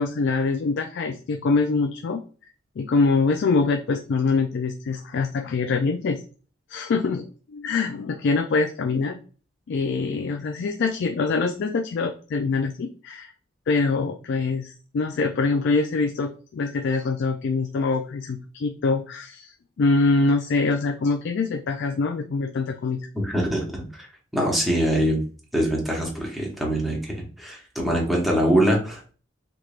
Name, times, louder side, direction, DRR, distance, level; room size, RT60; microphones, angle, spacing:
voice 1, 0.0-2.2 2.8-6.2 6.7-9.2 9.7-13.3 13.7-23.0, left 4 dB, 60° left, 4 dB, 0.3 m, -24 dB
voice 2, 23.1-24.1 24.3-25.2 25.5-29.1, equal, ahead, -2 dB, 0.9 m, -23 dB
3.4 x 3.1 x 2.4 m, 0.38 s
head